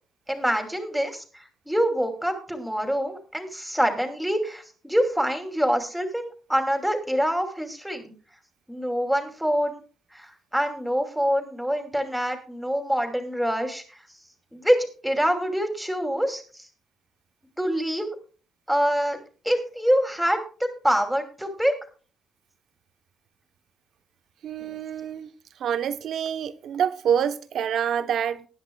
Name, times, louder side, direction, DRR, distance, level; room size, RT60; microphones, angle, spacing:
voice 1, 0.3-1.2 1.7-8.1 8.7-9.8 10.1-13.8 14.5-16.4 17.6-18.2 18.7-19.2 19.4-20.4 20.8-21.7 24.6-24.8, equal, ahead, 2.7 m, -25 dB
voice 2, 24.4-25.3 25.6-28.5, right 8 dB, 70° right, 0.9 m, -26 dB
19.5 x 10.5 x 2.3 m
cardioid pair, 90°, 0 cm